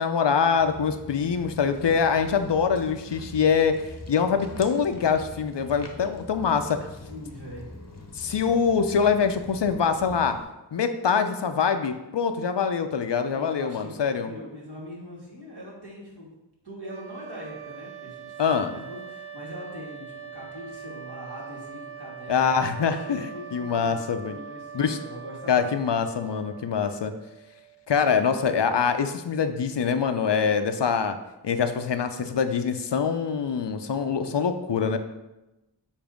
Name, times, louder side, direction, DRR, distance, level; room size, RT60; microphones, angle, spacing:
voice 1, 0.0-3.8 4.1-6.8 8.2-10.4 10.7-14.3 18.4-18.7 22.3-23.2 23.5-24.4 24.7-25.0 25.5-27.1 27.9-31.2 31.4-35.0, left 6 dB, 70° left, 8 dB, 0.6 m, -24 dB
Walk footsteps, 0.5-10.4, left 2 dB, 35° left, 0.8 m, -43 dB
voice 2, 7.1-7.7 8.1-8.2 13.3-16.3 16.6-25.7, left 1 dB, 60° right, -5 dB, 2.2 m, -42 dB
sound 1, 16.8-27.8, right 7 dB, 30° right, 0.6 m, -42 dB
7.0 x 2.7 x 5.1 m, 0.98 s
wide cardioid pair, 50°, 44 cm